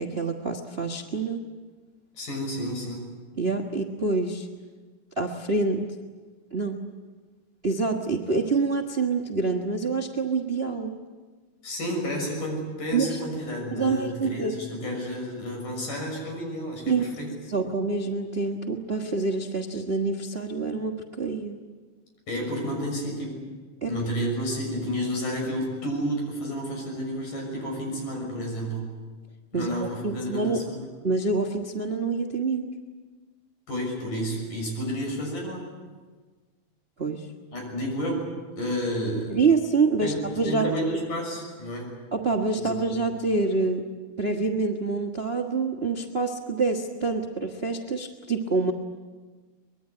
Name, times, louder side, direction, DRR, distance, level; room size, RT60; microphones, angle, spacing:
voice 1, 0.0-1.4 3.4-4.5 5.2-5.9 6.5-6.8 7.6-10.9 12.9-13.2 13.7-14.5 16.9-17.0 17.5-21.6 23.8-23.9 29.5-29.7 30.0-30.7 31.0-32.6 37.0-37.3 39.3-41.0 42.1-43.8 44.2-48.7, right 4 dB, 50° right, 3 dB, 0.7 m, -26 dB
voice 2, 2.1-3.1 11.6-17.3 22.3-23.4 23.9-28.9 29.5-30.9 33.7-35.7 37.5-38.3 38.6-39.4 40.0-42.0 42.6-42.9, equal, 85° left, 1 dB, 8.1 m, -31 dB
23.5 x 21.5 x 9.6 m, 1.4 s
omnidirectional pair, 3.6 m